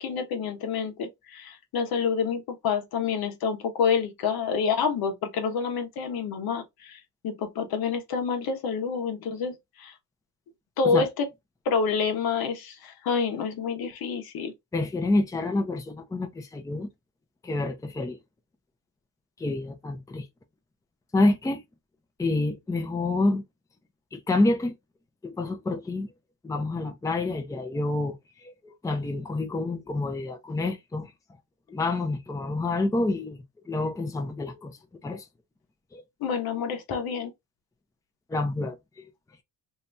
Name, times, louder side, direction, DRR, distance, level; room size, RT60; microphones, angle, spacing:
voice 1, 0.0-9.9 10.8-11.3 11.6-14.5 36.2-37.3, left 5 dB, 70° left, 1.0 m, -28 dB
voice 2, 14.7-16.9 17.4-18.2 19.4-20.2 21.1-21.6 22.2-23.4 24.1-24.7 25.2-26.1 26.4-28.2 28.4-31.1 31.7-34.8 35.0-35.2 35.9-36.0 38.3-39.1, left 2 dB, 10° left, 0.6 m, -28 dB
2.8 x 2.6 x 3.3 m
cardioid pair, 115°, 37 cm